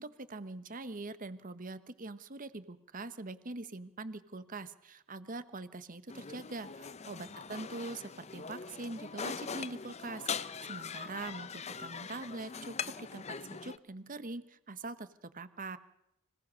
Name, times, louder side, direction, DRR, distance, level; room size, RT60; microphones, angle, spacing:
voice 1, 0.0-15.8, right 3 dB, 40° right, 13 dB, 1.1 m, -43 dB
sound 1, 6.1-13.8, left 6 dB, 30° left, 0.7 m, -42 dB
26.5 x 17.5 x 6.3 m, 0.82 s
head